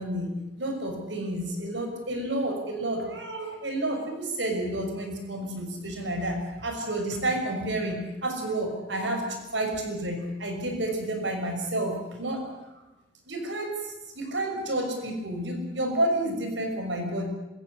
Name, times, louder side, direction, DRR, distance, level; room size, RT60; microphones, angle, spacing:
voice 1, 0.0-12.5 13.3-17.3, right 1 dB, 90° right, 4 dB, 6.1 m, -30 dB
26.5 x 16.0 x 10.0 m, 1.0 s
head